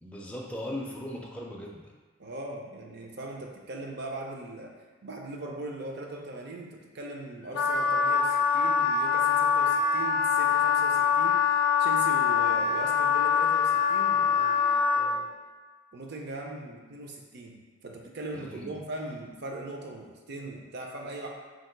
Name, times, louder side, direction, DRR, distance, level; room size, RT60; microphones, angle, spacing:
voice 1, 0.0-1.9 18.3-18.8, left 1 dB, 5° left, -2 dB, 0.4 m, -38 dB
voice 2, 2.2-4.7 5.0-15.3 15.9-21.3, right 2 dB, 55° right, 1 dB, 0.5 m, -40 dB
Wind instrument woodwind instrument, 7.5-15.1, left 6 dB, 85° left, 0.4 m, -24 dB
2.8 x 2.8 x 4.4 m, 1.4 s
head